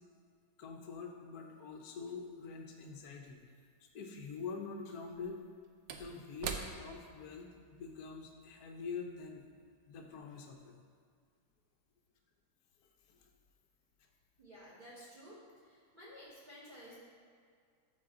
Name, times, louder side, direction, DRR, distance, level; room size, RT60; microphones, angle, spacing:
voice 1, 0.6-3.4 3.9-5.4 5.9-9.5 9.9-10.7 13.1-13.2, left 5 dB, 60° left, 2 dB, 1.1 m, -45 dB
Slam / Wood, 3.4-3.5 5.0-9.7 10.0-10.2, right 6 dB, 75° right, 1.1 m, -47 dB
voice 2, 14.4-17.0, equal, 25° right, -7 dB, 1.4 m, -54 dB
13.0 x 4.4 x 3.8 m, 2.1 s
omnidirectional pair, 2.3 m